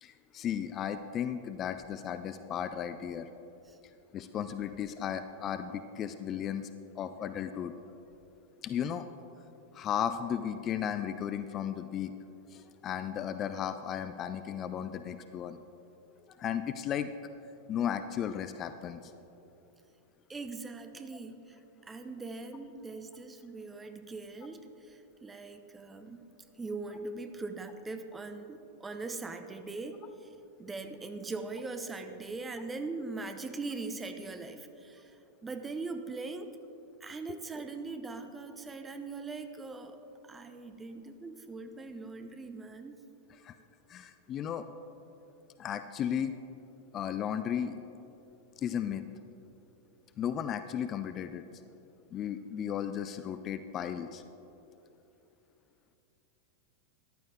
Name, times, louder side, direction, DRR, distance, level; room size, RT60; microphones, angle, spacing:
voice 1, 0.0-3.3 4.1-6.7 6.9-7.7 8.6-9.1 9.7-12.1 12.5-15.6 16.3-17.1 17.7-19.1 37.3-37.4 43.4-43.5 43.9-44.6 45.6-46.4 46.9-47.8 48.6-49.0 50.2-51.4 52.1-54.2, left 9 dB, 30° left, 10 dB, 0.4 m, -35 dB
voice 2, 20.3-26.2 26.6-30.3 30.6-36.5 37.0-42.9, right 3 dB, 15° right, 7 dB, 0.8 m, -41 dB
14.0 x 11.0 x 3.4 m, 3.0 s
figure-of-eight pair, 90°, 0 cm